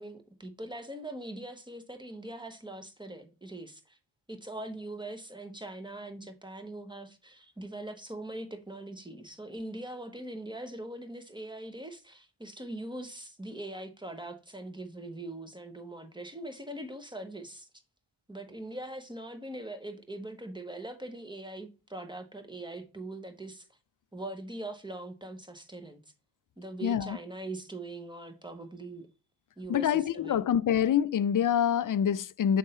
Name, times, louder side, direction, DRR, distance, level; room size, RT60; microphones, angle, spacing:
voice 1, 0.0-4.0 4.3-17.7 18.3-23.7 24.1-26.0 26.6-29.1 29.6-30.4, right 1 dB, 10° right, 1.1 m, -42 dB
voice 2, 26.8-27.2 29.7-32.6, left 9 dB, 45° left, 0.4 m, -26 dB
6.6 x 3.6 x 4.2 m
cardioid pair, 65°, 48 cm